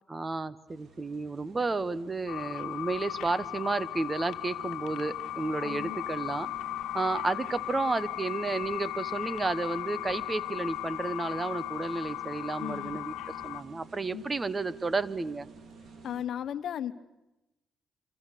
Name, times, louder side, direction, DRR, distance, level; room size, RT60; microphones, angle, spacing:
voice 1, 0.1-6.5 6.9-13.1 13.4-15.5, right 3 dB, 25° right, 17 dB, 1.0 m, -32 dB
sound 1, 0.7-16.2, right 4 dB, 60° right, 4.4 m, -52 dB
sound 2, 2.3-13.6, left 15 dB, 85° left, 1.3 m, -37 dB
voice 2, 5.6-6.0 12.6-13.0 14.1-14.2 16.0-16.9, left 10 dB, 65° left, 12 dB, 1.2 m, -36 dB
28.0 x 25.0 x 6.7 m, 0.96 s
cardioid pair, 90°, 0 cm